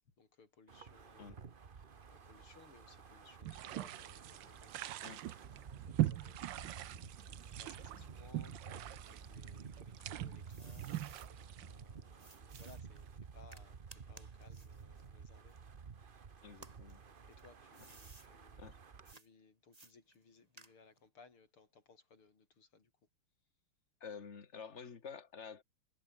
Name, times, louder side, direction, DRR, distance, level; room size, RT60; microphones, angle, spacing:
voice 1, 0.0-5.1 5.8-11.3 11.6-13.8 14.1-15.6 16.6-18.8 19.1-22.9, left 4 dB, 80° left, 5.0 m, -64 dB
Wind, 0.7-19.1, right 6 dB, 35° right, 0.9 m, -52 dB
sound 1, 3.4-13.0, right 13 dB, 70° right, 1.4 m, -42 dB
sound 2, 9.9-11.3 12.2-16.1 16.5-18.3 19.0-19.3 19.7-21.1, right 3 dB, 20° right, 1.8 m, -60 dB
voice 2, 16.4-17.0 18.6-18.8 24.0-25.6, left 6 dB, 35° left, 2.0 m, -49 dB
omnidirectional pair, 2.4 m